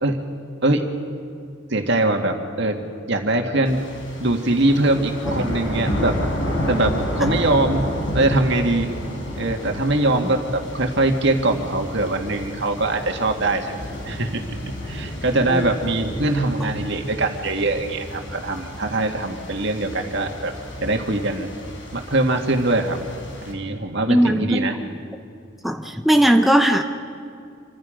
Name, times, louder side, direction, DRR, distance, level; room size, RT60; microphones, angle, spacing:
voice 1, 1.7-2.8 3.1-6.2 6.7-8.9 9.4-20.5 20.8-21.5 21.9-23.0 23.5-24.8, right 2 dB, 60° right, 4 dB, 2.1 m, -22 dB
sound 1, 3.7-23.5, equal, 65° left, 4.5 m, -31 dB
voice 2, 24.1-24.7 25.6-26.8, right 1 dB, ahead, 4 dB, 0.8 m, -18 dB
27.5 x 25.0 x 5.2 m, 2.4 s
head